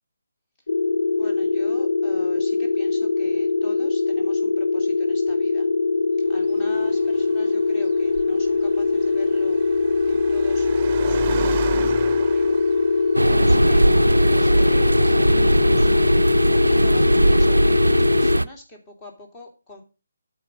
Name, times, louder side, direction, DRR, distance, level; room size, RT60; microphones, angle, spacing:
sound 1, 0.7-18.4, left 4 dB, 60° left, 0.6 m, -21 dB
voice 1, 1.1-5.7 6.3-9.6 10.1-19.8, left 1 dB, 15° left, 1 dB, 2.3 m, -44 dB
Car, 6.3-14.2, right 8 dB, 25° right, 0.9 m, -35 dB
sound 2, 13.1-18.4, right 2 dB, 80° right, 0.4 m, -19 dB
13.0 x 4.7 x 5.5 m, 0.32 s
figure-of-eight pair, 145°, 0 cm